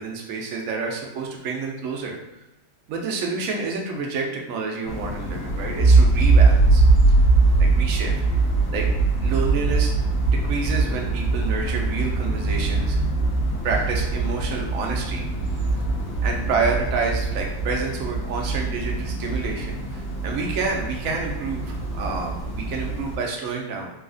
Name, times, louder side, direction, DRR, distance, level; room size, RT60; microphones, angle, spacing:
voice 1, 0.0-2.2 2.9-7.1 7.6-8.1 8.7-8.8 9.2-9.9 10.2-13.0 13.6-15.2 16.2-23.9, right 4 dB, 70° right, 0 dB, 0.8 m, -29 dB
sound 1, 4.9-23.2, right 3 dB, 70° left, 1.5 m, -22 dB
3.9 x 2.4 x 2.5 m, 0.93 s
omnidirectional pair, 1.9 m